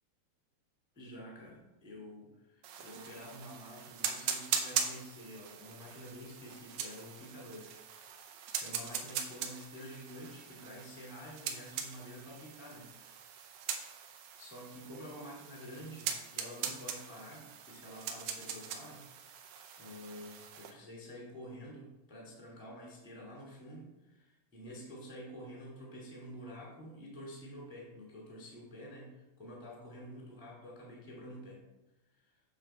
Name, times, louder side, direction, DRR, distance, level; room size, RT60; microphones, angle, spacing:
voice 1, 0.9-8.1 8.5-13.1 13.7-13.9 14.4-31.6 32.1-32.4, equal, 5° right, -3 dB, 1.0 m, -49 dB
sound 1, 2.6-20.7, right 8 dB, 75° right, 2.3 m, -41 dB
8.1 x 5.7 x 4.3 m, 1.0 s
omnidirectional pair, 4.5 m